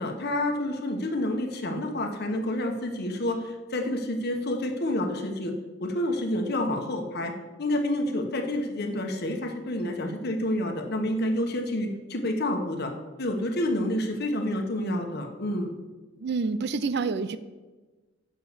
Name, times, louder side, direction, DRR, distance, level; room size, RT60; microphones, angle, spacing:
voice 1, 0.0-5.5 5.8-7.3 7.6-12.9 13.2-15.7, left 1 dB, 55° left, 4 dB, 1.2 m, -28 dB
voice 2, 16.2-17.4, right 4 dB, 55° right, 14 dB, 0.5 m, -27 dB
7.1 x 5.6 x 6.8 m, 1.2 s
head